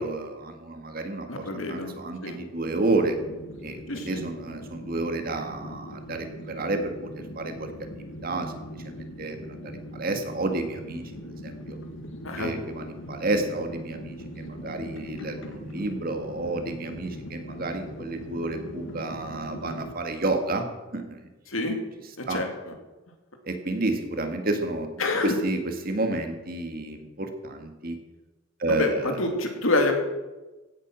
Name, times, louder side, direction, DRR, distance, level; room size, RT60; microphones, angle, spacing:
voice 1, 0.0-3.2 3.6-6.9 7.4-7.7 8.2-8.5 9.2-9.4 9.6-11.0 11.4-11.8 12.4-20.7 20.9-21.2 22.3-22.4 23.5-24.9 25.2-28.0 28.6-29.1, right 2 dB, 45° right, 5 dB, 1.8 m, -30 dB
voice 2, 1.3-2.0 2.2-2.4 3.9-4.3 12.2-12.5 21.5-21.8 22.2-22.7 25.0-25.4 28.7-29.9, left 2 dB, 90° left, 4 dB, 2.4 m, -27 dB
sound 1, 2.6-19.9, equal, 70° left, 1.5 m, -40 dB
16.5 x 8.3 x 6.2 m, 1.1 s
head